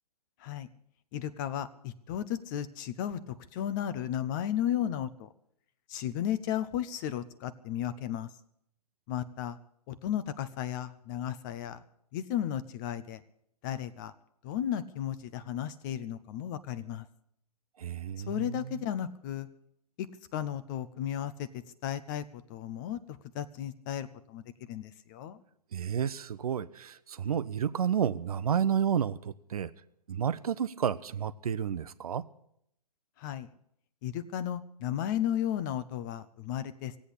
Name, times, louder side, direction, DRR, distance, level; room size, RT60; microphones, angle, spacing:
voice 1, 1.1-5.3 5.9-8.3 9.1-9.6 9.9-11.8 12.1-13.2 13.6-14.1 14.4-17.1 18.3-19.5 20.0-24.4 24.7-25.4 33.2-33.5 34.0-37.0, left 10 dB, 30° left, 0.7 m, -34 dB
voice 2, 17.8-18.7 25.7-29.7 30.1-32.2, right 8 dB, 60° right, 0.8 m, -31 dB
16.5 x 8.5 x 9.8 m
hypercardioid pair, 135°, 21 cm